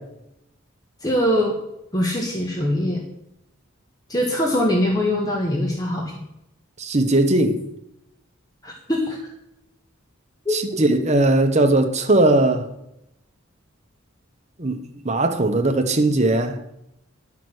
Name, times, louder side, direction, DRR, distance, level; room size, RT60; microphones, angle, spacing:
voice 1, 1.0-1.5 1.9-3.0 4.1-6.0 8.6-9.2 10.4-10.5, left 1 dB, 20° left, 1.5 m, -22 dB
voice 2, 6.8-7.6 10.5-12.7 14.6-16.6, right 2 dB, 35° right, 1.1 m, -19 dB
11.5 x 5.9 x 7.9 m
head